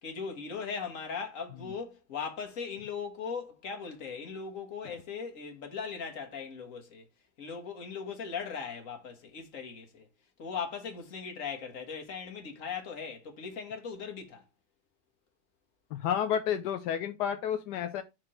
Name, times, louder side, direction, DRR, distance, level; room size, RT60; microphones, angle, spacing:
voice 1, 0.0-7.1 7.4-10.1 10.4-14.5, left 6 dB, 55° left, 1.8 m, -39 dB
voice 2, 15.9-18.0, left 9 dB, 85° left, 1.3 m, -30 dB
5.9 x 4.8 x 4.3 m
omnidirectional pair, 1.7 m